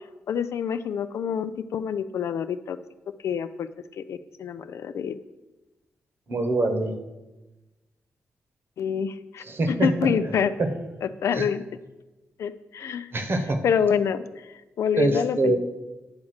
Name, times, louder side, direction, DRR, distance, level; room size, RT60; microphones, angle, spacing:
voice 1, 0.3-2.8 3.2-3.7 4.0-5.2 8.8-10.5 11.0-11.6 12.4-13.1 13.6-14.2 14.8-15.6, left 7 dB, 75° left, 12 dB, 0.4 m, -26 dB
voice 2, 6.3-6.9 9.4-9.9 10.6-10.7 11.3-11.4 13.1-13.6 15.0-15.6, right 2 dB, 50° right, 6 dB, 1.2 m, -24 dB
9.5 x 3.6 x 6.3 m, 1.1 s
cardioid pair, 75°, 5 cm